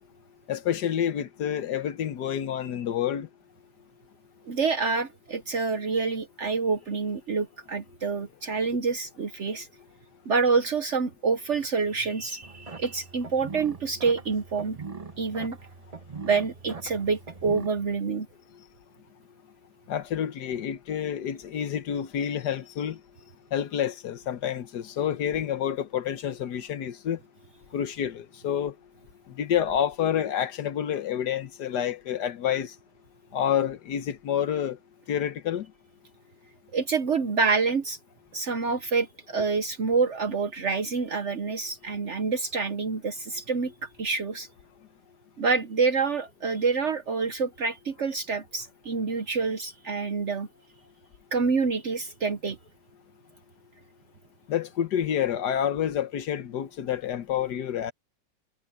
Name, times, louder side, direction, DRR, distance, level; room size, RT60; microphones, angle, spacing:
voice 1, 0.5-3.3 19.9-23.0 23.5-27.2 27.7-28.7 29.4-32.7 33.3-34.8 35.1-35.7 54.5-57.9, left 9 dB, 70° left, 1.5 m, -28 dB
voice 2, 4.5-9.7 10.3-14.8 15.2-15.6 16.2-18.3 36.7-38.0 38.3-43.7 44.0-44.5 45.4-50.5 51.3-52.6, right 4 dB, 50° right, 0.9 m, -27 dB
sound 1, 12.4-17.7, right 4 dB, 25° right, 0.9 m, -41 dB
omnidirectional pair, 1.9 m